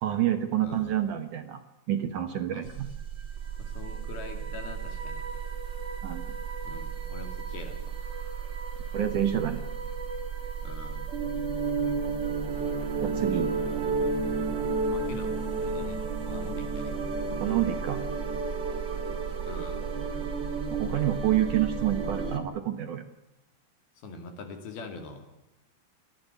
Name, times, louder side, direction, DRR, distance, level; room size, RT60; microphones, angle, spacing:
voice 1, 0.0-1.6 1.9-2.9 6.0-6.3 8.9-9.6 13.0-13.5 17.4-18.0 20.7-23.0, right 11 dB, 65° right, 7 dB, 2.0 m, -28 dB
voice 2, 0.6-1.0 2.5-2.7 3.6-5.2 6.6-8.0 10.6-11.1 13.7-14.1 14.9-16.9 19.4-19.9 24.0-25.3, left 3 dB, 60° left, 6 dB, 4.3 m, -43 dB
sound 1, 2.6-22.4, right 5 dB, 35° right, 2.3 m, -32 dB
29.0 x 12.5 x 9.4 m, 0.98 s
omnidirectional pair, 5.1 m